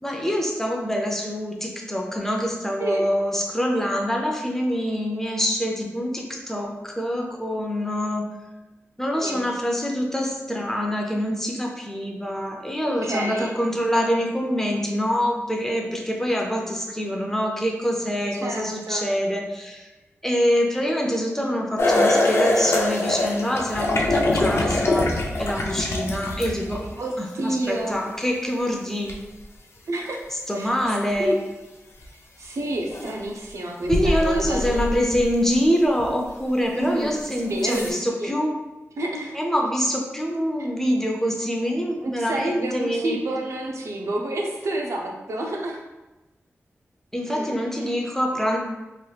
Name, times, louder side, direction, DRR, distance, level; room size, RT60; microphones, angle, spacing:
voice 1, 0.0-8.3 9.0-19.9 20.2-25.1 25.4-26.8 27.2-29.1 30.5-31.4 33.9-38.5 39.3-43.2 47.1-48.6, equal, 10° left, 0 dB, 0.5 m, -25 dB
voice 2, 12.8-13.5 18.3-19.1 27.0-28.0 29.9-30.2 30.5-30.7 31.2-31.3 32.4-35.2 36.7-37.1 37.5-38.3 39.0-39.4 42.0-45.8 47.3-47.5, right 1 dB, 85° right, 0 dB, 0.5 m, -29 dB
sound 1, 21.8-27.1 29.1-29.2 32.0-32.1 32.9-33.2 33.8-35.5 36.0-36.1 37.0-37.1 37.6-37.9, left 2 dB, 65° left, 0.4 m, -23 dB
3.2 x 2.9 x 2.3 m, 1.1 s
wide cardioid pair, 90°, 5 cm